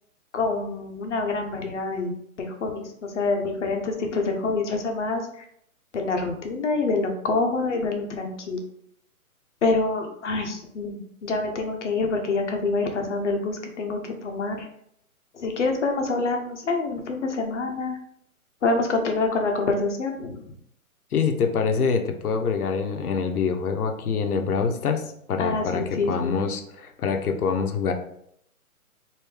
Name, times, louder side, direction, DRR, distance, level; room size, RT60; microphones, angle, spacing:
voice 1, 0.3-5.4 5.9-8.6 9.6-14.7 15.3-18.0 18.6-20.4 25.4-26.4, left 3 dB, 55° left, 3 dB, 0.7 m, -26 dB
voice 2, 21.1-27.9, left 5 dB, 90° left, 6 dB, 0.7 m, -25 dB
3.3 x 2.6 x 3.3 m, 0.71 s
hypercardioid pair, 165°, 43 cm